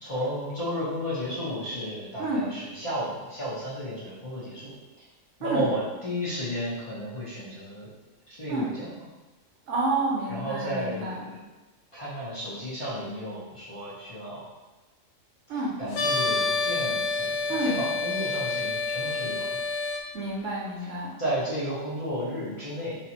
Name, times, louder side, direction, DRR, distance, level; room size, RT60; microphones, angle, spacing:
voice 1, 0.0-4.7 5.4-7.9 8.4-8.9 10.3-11.1 11.9-14.4 15.8-19.6 21.2-23.0, equal, 30° left, -10 dB, 0.8 m, -33 dB
voice 2, 2.2-2.5 5.4-5.6 8.5-8.7 9.7-11.3 15.5-15.7 17.5-17.8 20.1-21.1, right 2 dB, 70° right, -3 dB, 0.9 m, -29 dB
sound 1, 15.9-20.0, left 3 dB, 65° left, 0.8 m, -28 dB
3.3 x 2.9 x 2.8 m, 1.2 s
omnidirectional pair, 1.4 m